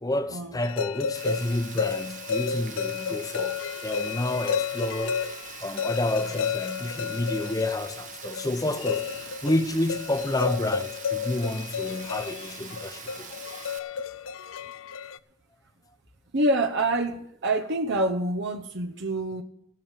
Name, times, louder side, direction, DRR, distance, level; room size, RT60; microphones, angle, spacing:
voice 1, 0.0-5.3 5.6-13.3, left 1 dB, 15° left, 0.8 m, -30 dB
sound 1, 0.6-15.2, left 7 dB, 70° left, 0.5 m, -32 dB
Rain, 1.1-13.8, right 7 dB, 40° right, 1.2 m, -43 dB
voice 2, 16.3-19.4, right 1 dB, 55° right, 0.9 m, -26 dB
18.0 x 6.4 x 7.4 m
head